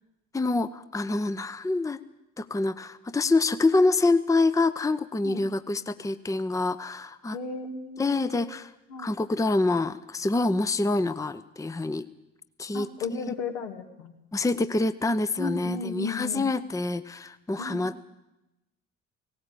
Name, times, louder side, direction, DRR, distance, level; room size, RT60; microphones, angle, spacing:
voice 1, 0.3-2.0 2.4-7.4 8.0-8.7 9.0-12.0 12.6-12.9 14.3-18.1, left 3 dB, 10° left, 13 dB, 0.8 m, -26 dB
voice 2, 7.3-8.5 8.9-9.1 12.7-14.1 15.4-16.5 17.6-17.9, left 4 dB, 75° left, 3 dB, 2.3 m, -35 dB
18.5 x 17.5 x 8.7 m, 0.93 s
figure-of-eight pair, 50°, 37 cm